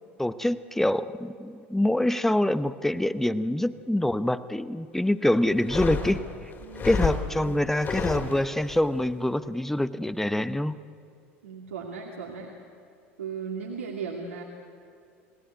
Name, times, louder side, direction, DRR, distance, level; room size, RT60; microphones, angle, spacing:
voice 1, 0.2-6.2 6.8-10.8, left 1 dB, 5° left, 14 dB, 0.8 m, -25 dB
sound 1, 5.5-8.8, left 5 dB, 30° left, 3.5 m, -30 dB
voice 2, 6.6-7.0 7.3-7.6 11.4-12.5 13.2-14.4, right 6 dB, 75° right, -1 dB, 2.4 m, -37 dB
29.5 x 19.0 x 9.4 m, 2.4 s
figure-of-eight pair, 75°, 7 cm